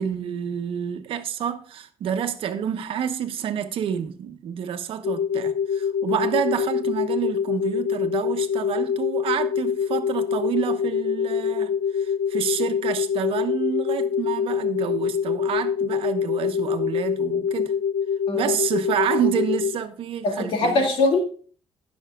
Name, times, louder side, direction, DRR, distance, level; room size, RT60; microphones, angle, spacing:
voice 1, 0.0-17.7 18.3-20.9, right 9 dB, 75° right, 1.0 m, -28 dB
sound 1, 5.0-19.8, left 7 dB, 50° left, 0.4 m, -25 dB
voice 2, 20.2-21.2, left 2 dB, 70° left, 2.4 m, -22 dB
18.5 x 6.3 x 2.4 m
cardioid pair, 170°, 9 cm